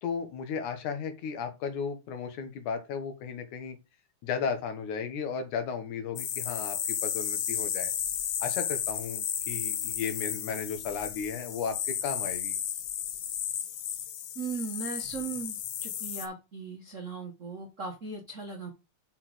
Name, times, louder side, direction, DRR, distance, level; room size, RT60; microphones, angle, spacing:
voice 1, 0.0-3.8 4.2-7.9 8.4-12.6, left 6 dB, 85° left, 2.8 m, -35 dB
sound 1, 6.2-16.3, left 9 dB, 70° left, 1.6 m, -33 dB
voice 2, 14.3-15.6 15.8-18.7, right 4 dB, 70° right, 0.7 m, -38 dB
6.2 x 4.0 x 6.2 m
omnidirectional pair, 3.4 m